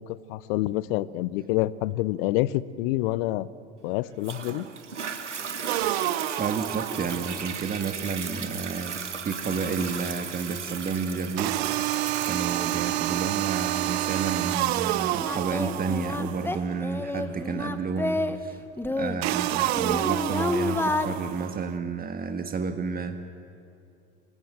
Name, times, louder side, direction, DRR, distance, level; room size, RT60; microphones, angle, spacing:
voice 1, 0.0-3.5 3.8-4.6, left 16 dB, 55° left, 19 dB, 0.8 m, -27 dB
Toilet flush, 4.2-17.3 17.9-18.0, right 6 dB, 85° right, 1.6 m, -37 dB
sound 1, 5.7-7.6 11.4-16.6 19.2-21.6, right 15 dB, 60° right, 0.8 m, -28 dB
voice 2, 6.4-11.9 12.2-18.6 18.9-23.2, right 5 dB, 25° right, 7 dB, 1.5 m, -31 dB
Singing, 14.6-14.7 15.2-18.4 18.8-21.1, left 2 dB, 5° left, 1.3 m, -29 dB
26.0 x 20.5 x 7.7 m, 2.5 s
figure-of-eight pair, 75°, 35 cm